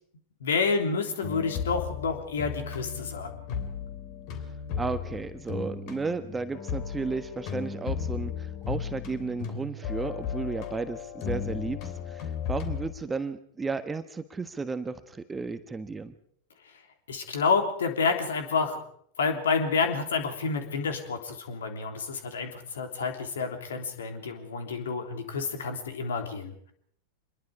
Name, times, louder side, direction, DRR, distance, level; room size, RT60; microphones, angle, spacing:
voice 1, 0.4-3.3 17.1-18.8 19.2-26.7, left 5 dB, 65° left, 5 dB, 3.4 m, -29 dB
sound 1, 1.2-12.9, left 7 dB, 45° left, 3.3 m, -35 dB
voice 2, 4.8-16.2, right 4 dB, 15° right, 10 dB, 1.4 m, -34 dB
26.0 x 21.5 x 4.8 m, 0.64 s
figure-of-eight pair, 90°, 0 cm